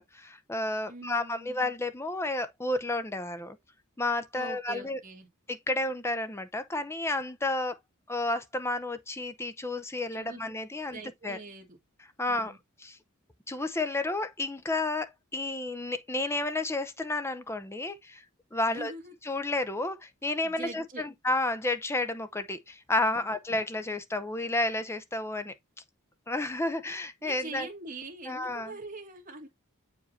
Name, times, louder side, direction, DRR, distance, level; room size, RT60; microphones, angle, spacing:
voice 1, 0.0-3.6 4.0-5.0 5.5-7.8 8.1-11.4 12.2-12.5 12.8-13.0 13.5-18.2 18.5-18.9 19.3-25.5 26.3-27.7 28.3-28.7, left 2 dB, 15° left, 0.7 m, -31 dB
voice 2, 0.9-1.6 4.3-5.3 10.1-10.4 10.9-11.8 12.3-12.6 18.7-19.1 20.3-21.0 23.1-23.3 27.2-29.5, right 2 dB, 40° right, 2.1 m, -43 dB
7.9 x 4.9 x 2.7 m
head